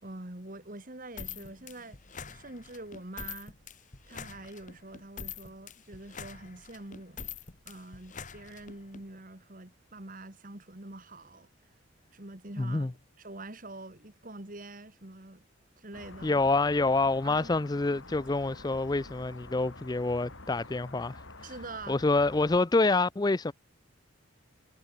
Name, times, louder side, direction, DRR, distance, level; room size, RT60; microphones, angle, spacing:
voice 1, 0.0-2.0 2.3-3.5 4.1-7.2 7.7-11.5 12.1-15.4 15.8-16.4 17.2-17.5 21.4-22.0, right 2 dB, 40° right, 2.1 m, -45 dB
sound 1, 1.2-9.0, left 6 dB, 40° left, 1.5 m, -44 dB
voice 2, 12.6-12.9 16.2-21.5 21.9-23.5, left 3 dB, 20° left, 0.4 m, -27 dB
sound 2, 15.9-22.6, left 2 dB, 70° left, 5.1 m, -48 dB
head